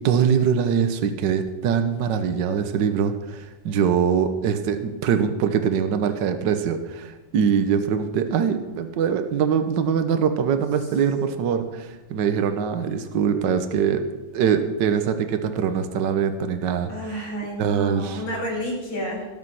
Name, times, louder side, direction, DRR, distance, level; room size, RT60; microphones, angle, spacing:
voice 1, 0.0-14.0 14.3-17.2 17.6-18.2, right 7 dB, 65° right, 8 dB, 1.6 m, -23 dB
voice 2, 16.9-19.3, equal, 75° left, -1 dB, 4.9 m, -30 dB
17.5 x 7.5 x 6.3 m, 1.1 s
omnidirectional pair, 2.2 m